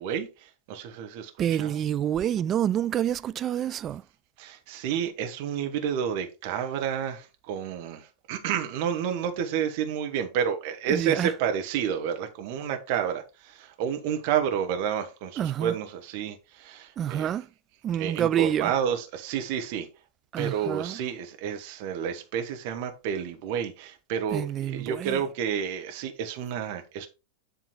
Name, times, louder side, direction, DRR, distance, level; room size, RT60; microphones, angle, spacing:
voice 1, 0.0-1.8 4.4-17.4 17.9-19.9 20.4-27.1, right 8 dB, 45° right, 1.7 m, -30 dB
voice 2, 1.4-4.0 10.9-11.3 15.4-15.7 17.0-17.4 17.8-18.7 20.3-20.9 24.3-25.2, right 10 dB, 30° right, 0.4 m, -27 dB
10.5 x 3.7 x 4.8 m
figure-of-eight pair, 90°, 0 cm